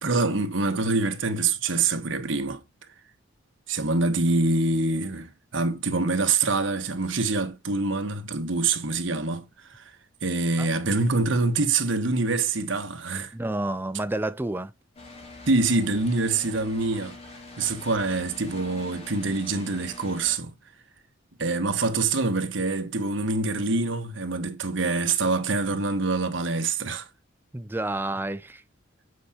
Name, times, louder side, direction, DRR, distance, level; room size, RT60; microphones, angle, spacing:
voice 1, 0.0-2.6 3.7-9.4 9.7-9.8 10.2-13.3 15.5-17.2 17.6-20.5 21.4-27.1, right 3 dB, 75° right, 1.3 m, -25 dB
voice 2, 13.3-14.7 27.5-28.6, right 2 dB, 10° right, 0.4 m, -29 dB
sound 1, 14.9-20.4, left 2 dB, 35° left, 2.3 m, -44 dB
8.0 x 4.8 x 2.8 m
head